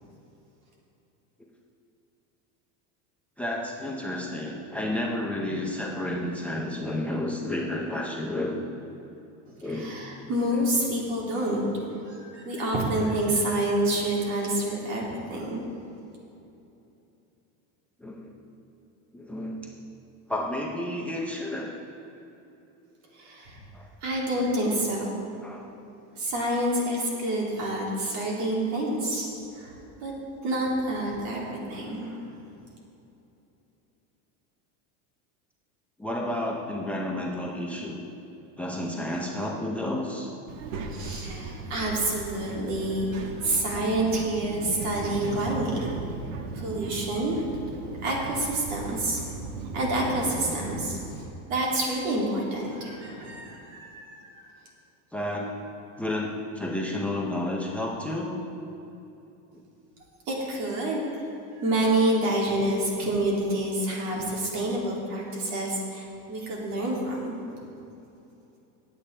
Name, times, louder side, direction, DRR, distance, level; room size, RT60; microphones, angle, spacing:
voice 1, 3.4-8.6 9.6-10.0 18.0-18.3 19.1-19.6 20.3-21.7 23.7-23.9 25.4-25.6 36.0-38.0 38.6-40.3 46.7-46.8 55.1-55.5 56.0-58.4, left 1 dB, 5° left, -2 dB, 0.5 m, -31 dB
voice 2, 9.6-11.7 11.9-15.6 23.1-23.6 24.0-25.1 26.2-29.3 29.5-30.1 30.4-32.2 40.9-45.8 46.5-47.4 48.0-49.3 49.7-51.0 51.5-54.4 60.3-61.2 61.6-67.7, right 1 dB, 50° right, -3 dB, 2.7 m, -28 dB
Child speech kid speaking, 40.5-51.2, right 3 dB, 85° right, 1.2 m, -37 dB
18.5 x 8.4 x 3.3 m, 2.9 s
cardioid pair, 175°, 37 cm